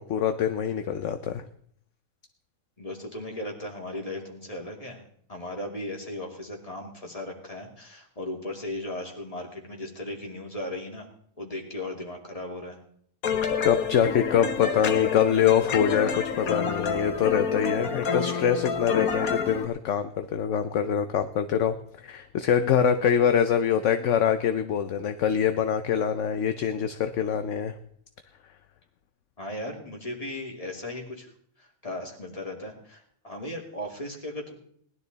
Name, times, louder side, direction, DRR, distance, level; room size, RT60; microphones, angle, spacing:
voice 1, 0.0-1.4 13.6-27.7, left 8 dB, 65° left, 9 dB, 1.0 m, -24 dB
voice 2, 2.8-5.0 5.3-11.1 11.4-12.8 29.4-31.3 31.6-34.6, left 1 dB, 25° left, 0 dB, 2.7 m, -37 dB
sound 1, 13.2-19.7, left 6 dB, 80° left, 1.6 m, -28 dB
19.5 x 11.5 x 4.0 m, 0.65 s
omnidirectional pair, 1.5 m